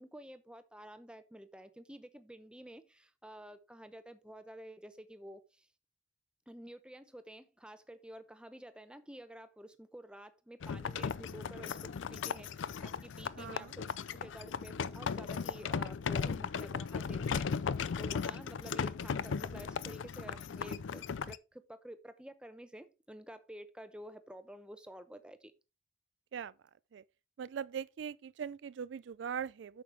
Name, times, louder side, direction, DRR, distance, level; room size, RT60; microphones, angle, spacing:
voice 1, 0.0-5.7 6.5-13.8 14.1-17.5 18.0-25.5, right 1 dB, 5° right, 0.7 m, -50 dB
sound 1, 10.6-21.4, left 6 dB, 85° left, 0.4 m, -37 dB
voice 2, 13.4-13.7 26.3-26.5 26.9-27.0 27.4-29.8, right 7 dB, 70° right, 0.3 m, -41 dB
8.6 x 6.5 x 3.4 m
head